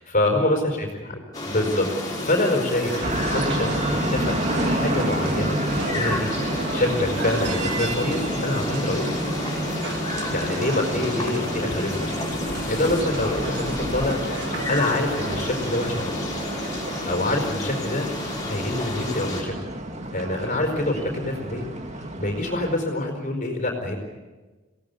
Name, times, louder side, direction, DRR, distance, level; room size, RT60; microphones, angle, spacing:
voice 1, 0.1-3.8 4.1-6.3 6.7-9.1 10.3-12.1 12.4-14.2 14.7-16.2 17.1-18.1 18.5-19.5 20.1-21.6 22.1-24.0, left 1 dB, 40° left, 2 dB, 4.5 m, -26 dB
sound 1, 1.3-19.4, left 1 dB, 20° left, 6.8 m, -30 dB
sound 2, 2.8-17.0, right 3 dB, 60° right, 1.9 m, -37 dB
sound 3, 3.0-22.8, right 1 dB, 35° right, 2.1 m, -30 dB
26.5 x 18.0 x 8.2 m, 1.3 s
head